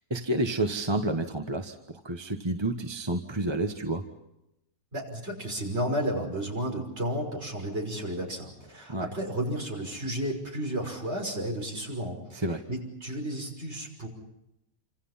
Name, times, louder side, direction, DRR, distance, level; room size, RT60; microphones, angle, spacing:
voice 1, 0.1-1.7 2.0-4.0 8.9-9.1 12.3-12.6, right 1 dB, 20° right, 5 dB, 1.3 m, -29 dB
voice 2, 4.9-14.1, right 1 dB, 45° right, 1 dB, 6.1 m, -32 dB
28.5 x 26.5 x 5.7 m, 0.87 s
omnidirectional pair, 1.5 m